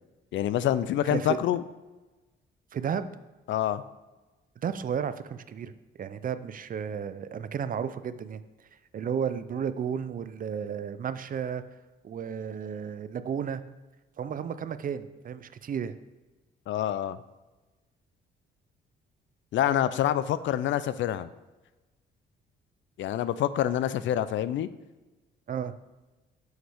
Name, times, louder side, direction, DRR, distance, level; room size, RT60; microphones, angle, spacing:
voice 1, 0.3-1.6 3.5-3.8 16.7-17.2 19.5-21.3 23.0-24.7, left 11 dB, 70° left, 15 dB, 0.5 m, -26 dB
voice 2, 2.7-3.1 4.6-8.4 8.9-11.6 12.0-13.6 14.2-16.0 25.5-25.7, right 7 dB, 45° right, 13 dB, 0.5 m, -33 dB
9.3 x 6.4 x 3.5 m, 1.2 s
cardioid pair, 90°, 20 cm